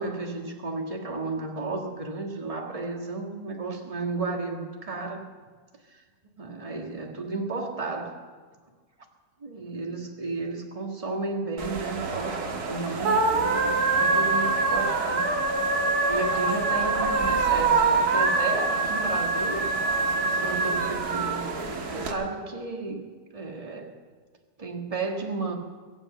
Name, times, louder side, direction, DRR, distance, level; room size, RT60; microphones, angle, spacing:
voice 1, 0.0-5.3 5.9-6.0 6.4-8.2 9.4-15.2 16.1-19.7 20.1-23.0 23.3-24.0 24.6-25.5, right 3 dB, 20° right, 2 dB, 1.6 m, -33 dB
sound 1, 11.6-22.1, right 3 dB, 65° right, 2.0 m, -25 dB
22.0 x 8.2 x 7.7 m, 1.5 s
omnidirectional pair, 1.8 m